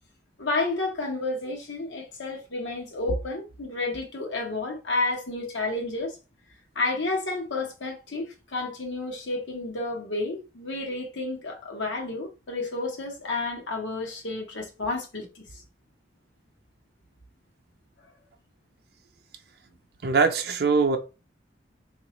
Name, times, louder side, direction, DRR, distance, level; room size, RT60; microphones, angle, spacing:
voice 1, 0.4-6.1 6.7-15.6, left 2 dB, 80° left, 1.0 m, -31 dB
voice 2, 20.0-21.0, right 4 dB, 55° right, 0.5 m, -22 dB
3.9 x 2.4 x 3.0 m
head